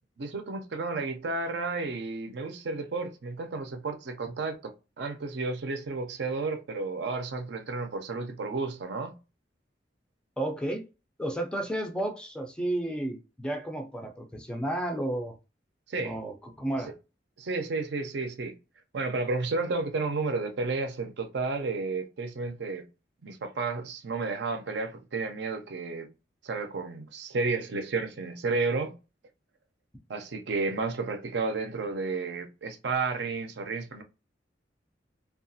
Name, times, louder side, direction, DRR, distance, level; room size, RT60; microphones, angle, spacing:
voice 1, 0.2-9.1 15.9-16.2 17.4-18.5 18.9-22.8 23.2-26.1 26.4-28.9 30.1-34.0, right 3 dB, 65° right, 0.5 m, -32 dB
voice 2, 10.4-10.8 11.2-15.4 16.0-16.9, right 1 dB, 5° left, 0.4 m, -32 dB
2.8 x 2.3 x 2.6 m
head